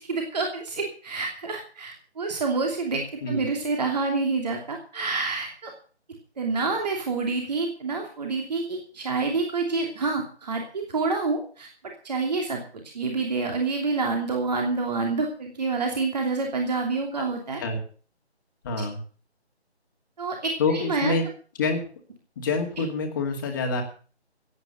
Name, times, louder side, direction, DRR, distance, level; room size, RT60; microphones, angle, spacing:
voice 1, 0.0-5.7 6.4-11.7 12.0-12.6 12.9-17.6 18.8-18.9 20.2-21.2, right 3 dB, 35° right, 2 dB, 3.0 m, -27 dB
voice 2, 18.6-19.0 20.6-21.2 21.6-21.8 22.4-23.8, left 4 dB, 20° left, 3 dB, 2.2 m, -26 dB
16.0 x 9.1 x 6.7 m, 0.40 s
figure-of-eight pair, 155°, 34 cm